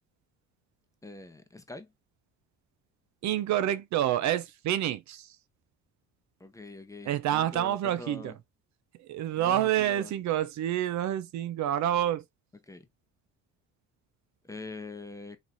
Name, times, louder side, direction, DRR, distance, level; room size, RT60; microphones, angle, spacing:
voice 1, 1.0-1.9 6.4-8.4 9.4-10.1 12.6-12.9 14.4-15.4, left 2 dB, 10° left, 0.7 m, -44 dB
voice 2, 3.2-5.4 7.1-8.3 9.0-12.2, right 11 dB, 55° right, 0.5 m, -28 dB
3.8 x 3.1 x 2.4 m
cardioid pair, 100°, 33 cm